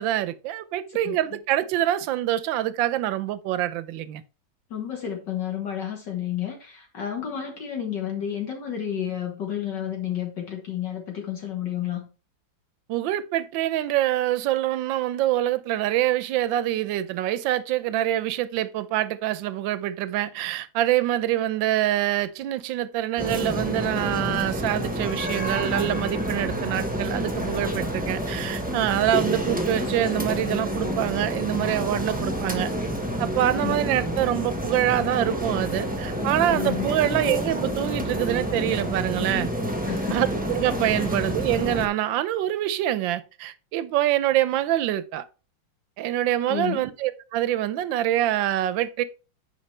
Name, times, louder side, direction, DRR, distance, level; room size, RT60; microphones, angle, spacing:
voice 1, 0.0-4.2 12.9-32.7 33.2-39.5 40.1-45.2 46.0-49.0, right 13 dB, 75° right, 1.4 m, -25 dB
voice 2, 4.7-12.1 33.4-33.8 36.5-36.9 39.9-40.2 40.9-41.1 46.5-46.8, left 10 dB, 60° left, 1.9 m, -31 dB
sound 1, 23.2-41.9, equal, 5° right, 0.8 m, -28 dB
9.6 x 5.5 x 3.3 m
omnidirectional pair, 2.2 m